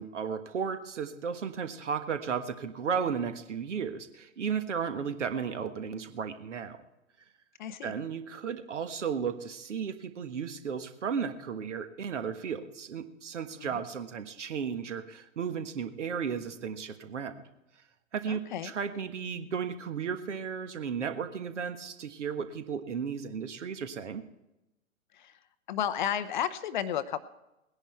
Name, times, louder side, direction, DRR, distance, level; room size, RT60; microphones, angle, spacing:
voice 1, 0.0-6.8 7.8-17.3 18.1-24.2, right 6 dB, 60° right, 9 dB, 1.5 m, -34 dB
voice 2, 7.6-7.9 13.5-13.8 18.3-18.7 25.1-25.3 25.7-27.3, left 9 dB, 35° left, 12 dB, 0.7 m, -33 dB
19.0 x 10.5 x 4.4 m, 0.94 s
figure-of-eight pair, 115°, 40 cm